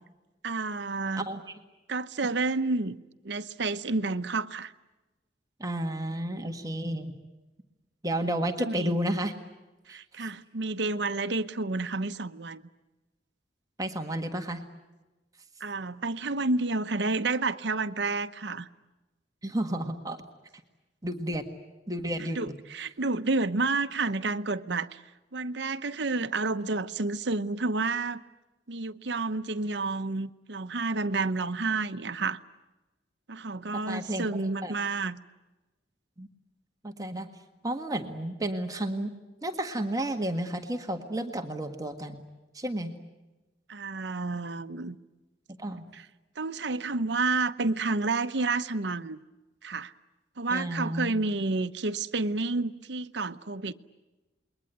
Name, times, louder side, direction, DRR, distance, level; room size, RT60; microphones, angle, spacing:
voice 1, 0.4-1.3 1.9-3.0 3.2-4.7 8.6-9.0 9.9-12.6 15.6-18.7 22.2-25.0 25.3-28.2 28.7-32.4 33.3-35.2 43.7-45.0 45.9-46.1 46.4-49.2 49.6-49.9 50.4-53.7, right 3 dB, 70° right, 0.9 m, -30 dB
voice 2, 1.1-1.6 5.6-7.1 8.0-9.3 9.9-10.3 13.8-14.6 19.4-20.2 21.0-21.4 21.9-22.5 33.7-34.7 36.2-36.3 36.8-37.3 37.6-39.1 39.4-42.2 42.5-42.9 45.6-45.9 50.5-51.1, right 1 dB, 20° right, 1.7 m, -32 dB
28.5 x 22.0 x 9.4 m
head